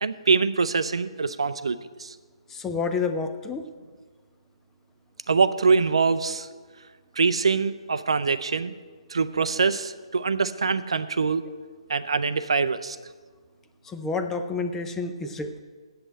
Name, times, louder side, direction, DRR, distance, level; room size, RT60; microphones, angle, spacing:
voice 1, 0.0-2.1 5.3-6.5 7.2-8.7 9.1-11.5 11.9-13.0, right 4 dB, 60° right, 13 dB, 0.5 m, -24 dB
voice 2, 2.5-3.7 13.8-15.6, left 4 dB, 10° left, 8 dB, 0.6 m, -29 dB
8.0 x 7.8 x 8.6 m, 1.5 s
figure-of-eight pair, 135°, 3 cm